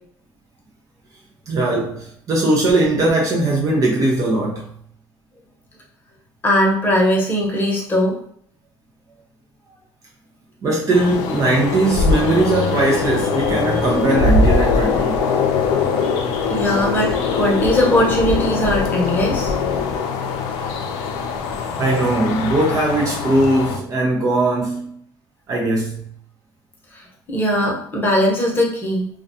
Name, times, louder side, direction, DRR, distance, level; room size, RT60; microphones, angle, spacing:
voice 1, 1.5-4.7 10.6-15.2 21.8-24.9 25.5-26.0, right 2 dB, 40° right, 0.5 m, -19 dB
voice 2, 6.4-8.2 16.5-19.5 26.9-29.1, equal, 20° left, 0.8 m, -19 dB
sound 1, 10.9-23.8, left 4 dB, 85° left, 0.4 m, -21 dB
2.3 x 2.2 x 2.6 m
cardioid pair, 120°, 9 cm